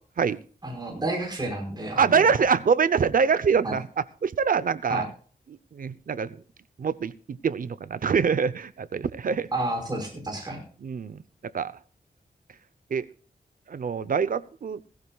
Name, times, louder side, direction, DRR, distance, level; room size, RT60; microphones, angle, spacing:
voice 1, 0.6-2.4 3.6-3.7 4.9-5.0 9.5-10.6, right 2 dB, 25° right, 1 dB, 5.2 m, -30 dB
voice 2, 2.0-5.1 5.5-6.3 6.8-9.5 10.8-11.2 11.5-11.7 12.9-13.1 13.7-14.8, right 6 dB, 60° right, 16 dB, 0.8 m, -24 dB
17.5 x 15.5 x 2.4 m, 0.42 s
wide cardioid pair, 140°, 16 cm